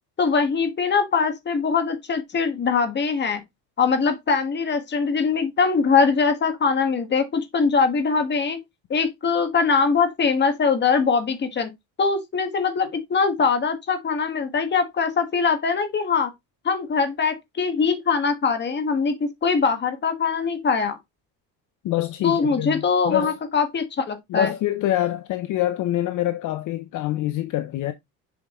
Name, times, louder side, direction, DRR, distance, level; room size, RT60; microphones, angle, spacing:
voice 1, 0.2-3.4 3.8-8.6 8.9-11.7 12.0-16.3 16.6-21.0 22.2-24.5, left 5 dB, 30° left, 1.5 m, -22 dB
voice 2, 21.8-23.4 24.3-27.9, left 13 dB, 55° left, 0.7 m, -25 dB
6.9 x 5.1 x 3.0 m
cardioid pair, 140°, 37 cm